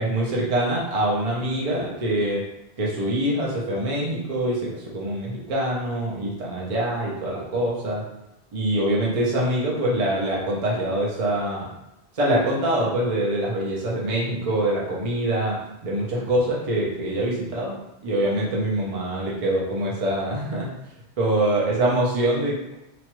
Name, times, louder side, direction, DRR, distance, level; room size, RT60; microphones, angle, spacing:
voice 1, 0.0-2.4 2.8-4.6 4.9-8.0 8.5-11.7 12.1-15.6 15.8-17.7 18.0-20.7 21.2-22.7, right 1 dB, 40° right, -4 dB, 0.7 m, -24 dB
3.0 x 2.3 x 3.0 m, 0.89 s
omnidirectional pair, 1.1 m